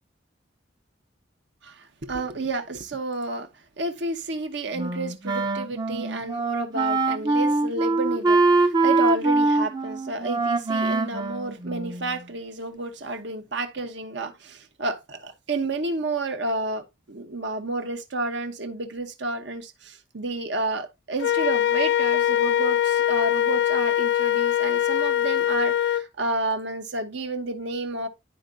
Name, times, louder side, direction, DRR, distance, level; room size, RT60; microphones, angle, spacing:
voice 1, 1.6-3.5 3.8-28.1, right 2 dB, 65° right, 1.1 m, -31 dB
Wind instrument woodwind instrument, 4.7-12.2, right 3 dB, 20° right, 0.6 m, -23 dB
Wind instrument woodwind instrument 2, 21.2-26.1, left 11 dB, 60° left, 0.3 m, -22 dB
11.5 x 4.6 x 2.5 m
head